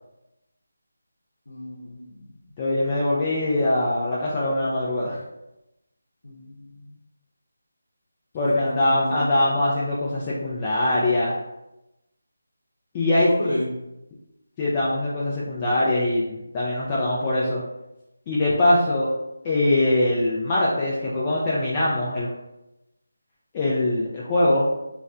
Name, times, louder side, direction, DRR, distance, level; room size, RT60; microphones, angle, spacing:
voice 1, 1.5-2.2 6.2-7.0 8.5-9.3 13.2-13.7, left 1 dB, 85° left, -4 dB, 0.6 m, -32 dB
voice 2, 2.6-5.2 8.3-11.4 12.9-13.5 14.6-17.6 18.3-19.1 19.4-22.3 23.5-24.7, left 1 dB, 15° left, -6 dB, 0.3 m, -22 dB
3.9 x 2.1 x 2.4 m, 0.93 s
figure-of-eight pair, 175°, 0 cm